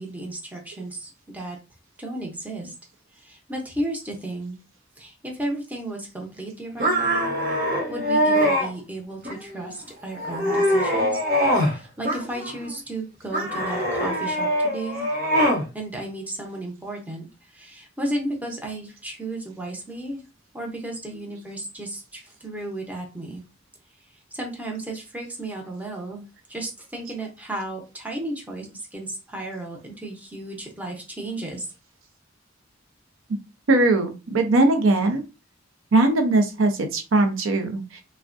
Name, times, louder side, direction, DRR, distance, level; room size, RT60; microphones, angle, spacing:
voice 1, 0.0-1.6 2.0-2.7 3.2-4.6 5.0-7.3 7.9-11.2 11.6-15.1 15.7-20.2 20.5-23.4 24.3-31.7, right 1 dB, 10° right, 0 dB, 0.6 m, -34 dB
sound 1, 6.8-8.7 9.2-9.8 10.2-11.8 12.0-12.7 13.3-15.7, equal, 50° right, 1.0 m, -23 dB
voice 2, 33.7-35.2 35.9-38.0, right 2 dB, 75° right, 6 dB, 0.6 m, -20 dB
3.4 x 2.1 x 2.5 m, 0.29 s
head